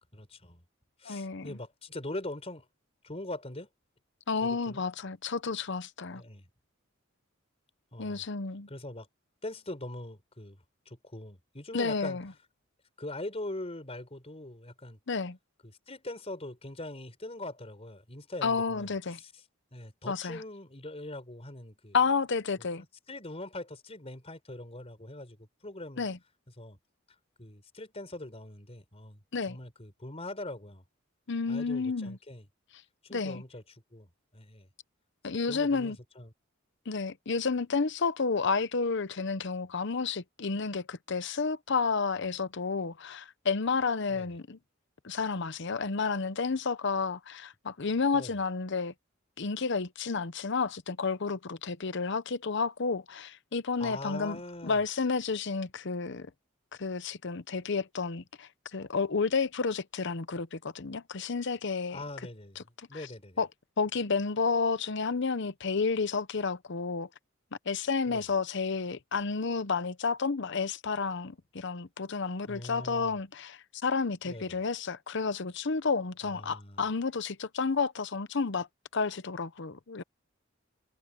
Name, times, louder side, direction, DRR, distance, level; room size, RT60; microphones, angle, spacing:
voice 1, 0.1-0.6 1.0-2.6 3.0-3.7 4.4-4.8 6.1-6.5 7.9-8.2 8.7-9.1 9.4-10.6 10.9-12.2 13.0-15.0 15.6-19.3 19.7-22.0 22.6-26.1 26.6-26.8 27.4-29.2 29.5-30.8 31.5-32.4 33.0-33.6 33.9-34.7 35.5-36.3 44.1-44.3 48.1-48.4 53.8-54.8 61.9-63.4 68.1-68.3 72.5-73.2 74.2-74.6 76.2-76.8, left 1 dB, 30° left, 4.5 m, -42 dB
voice 2, 1.0-1.6 4.3-6.2 8.0-8.7 11.7-12.3 15.1-15.4 18.4-19.2 20.1-20.4 21.9-22.8 26.0-26.2 29.3-29.6 31.3-32.2 33.1-33.4 35.2-36.0 36.9-44.6 45.0-48.9 49.4-56.3 56.8-62.0 62.6-62.7 62.9-63.1 63.4-63.5 63.8-67.1 67.7-78.7 78.9-80.0, left 4 dB, 60° left, 0.8 m, -31 dB
head